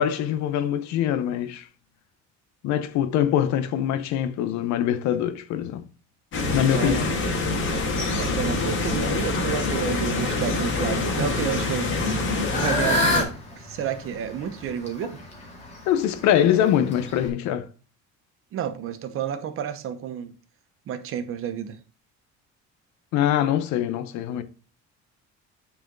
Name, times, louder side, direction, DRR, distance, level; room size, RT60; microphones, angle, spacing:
voice 1, 0.0-1.7 2.6-5.8 6.5-7.2 15.9-17.7 23.1-24.4, left 10 dB, 70° left, 0.9 m, -23 dB
sound 1, 6.3-13.2, left 3 dB, 40° left, 1.9 m, -25 dB
voice 2, 6.6-7.1 8.1-12.1 12.5-15.2 18.5-20.3 20.9-21.8, right 8 dB, 50° right, 1.0 m, -30 dB
Fowl / Bird, 12.0-17.3, left 1 dB, 20° left, 2.2 m, -29 dB
9.1 x 4.9 x 3.9 m
cardioid pair, 160°, 29 cm